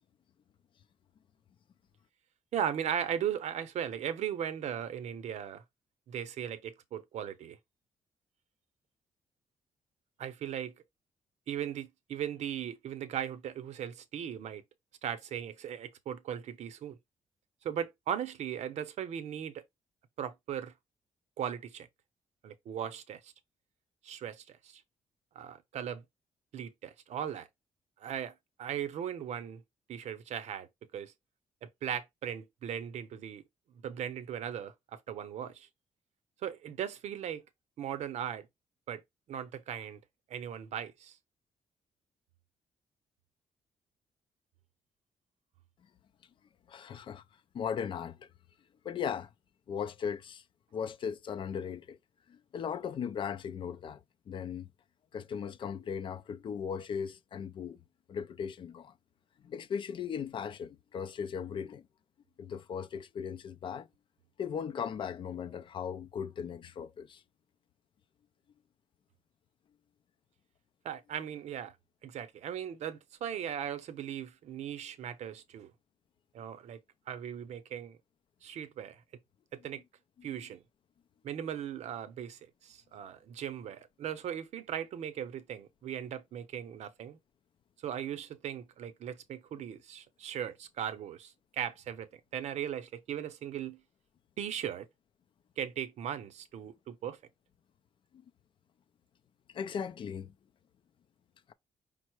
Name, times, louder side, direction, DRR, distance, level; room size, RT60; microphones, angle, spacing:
voice 1, 2.5-5.6 6.1-7.6 10.2-10.7 11.5-14.6 15.0-17.0 17.6-19.6 20.2-20.7 21.4-21.9 22.4-23.3 24.0-24.8 25.3-26.0 26.5-27.5 28.0-29.6 29.9-30.7 30.9-31.1 31.6-33.4 33.8-35.7 36.4-37.4 37.8-38.5 38.9-39.0 39.3-40.0 40.3-41.2 70.8-71.7 72.0-75.7 76.3-76.8 77.1-78.0 78.4-79.0 79.5-79.8 80.2-80.6 81.2-87.2 87.8-93.8 94.4-94.9 95.6-97.2, right 9 dB, 65° right, 0.7 m, -38 dB
voice 2, 46.7-47.2 47.5-48.3 48.8-49.3 49.7-50.4 50.7-52.0 52.3-54.0 54.3-54.7 55.1-57.8 58.1-58.9 59.4-61.8 62.4-63.9 64.4-67.2 99.5-100.3, left 7 dB, 45° left, 0.4 m, -37 dB
5.4 x 2.0 x 4.5 m
cardioid pair, 170°, 12 cm